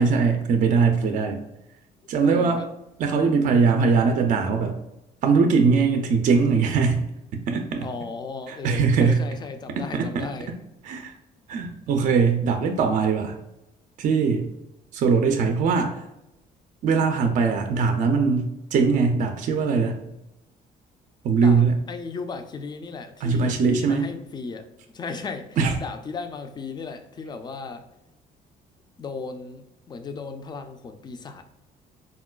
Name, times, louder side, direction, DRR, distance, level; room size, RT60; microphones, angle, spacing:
voice 1, 0.0-1.4 2.1-2.6 3.0-4.8 5.2-7.0 7.3-7.9 8.5-9.2 9.8-10.3 10.8-11.1 11.5-13.4 14.0-14.5 14.9-16.0 16.8-20.0 21.2-21.8 23.2-24.1 25.6-25.7, right 5 dB, 50° right, 5 dB, 0.4 m, -21 dB
voice 2, 2.2-2.7 3.8-4.0 7.8-10.6 21.4-24.7 24.9-27.9 29.0-31.4, left 4 dB, 25° left, 7 dB, 0.3 m, -36 dB
3.8 x 2.2 x 2.2 m, 0.91 s
cardioid pair, 110°, 17 cm